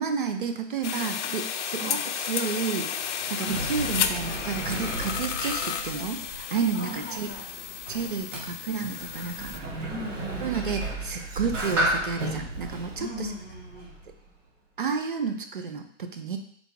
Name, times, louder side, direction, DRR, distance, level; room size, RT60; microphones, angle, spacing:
voice 1, 0.0-2.0 2.3-2.9 3.3-7.3 7.9-9.6 10.4-13.3 14.8-16.4, right 6 dB, 45° right, 6 dB, 0.5 m, -31 dB
sound 1, 0.8-9.6, left 8 dB, 70° left, 0.5 m, -33 dB
Sliding door, 2.9-14.3, right 1 dB, 85° right, 1.3 m, -34 dB
voice 2, 6.7-7.5 9.8-10.6 13.0-14.0, equal, 5° left, -18 dB, 0.6 m, -38 dB
4.0 x 2.8 x 4.5 m, 0.65 s
hypercardioid pair, 180°, 37 cm